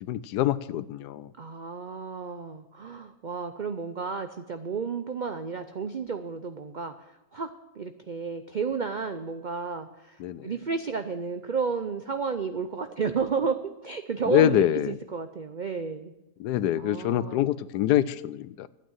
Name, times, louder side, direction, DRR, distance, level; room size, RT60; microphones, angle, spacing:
voice 1, 0.0-1.3 10.2-10.5 14.3-14.9 16.4-18.7, left 12 dB, 80° left, 16 dB, 1.1 m, -25 dB
voice 2, 1.4-6.9 7.3-7.5 7.8-16.1 16.8-17.5, right 5 dB, 80° right, 8 dB, 0.4 m, -32 dB
12.0 x 9.0 x 7.4 m, 0.96 s
omnidirectional pair, 1.7 m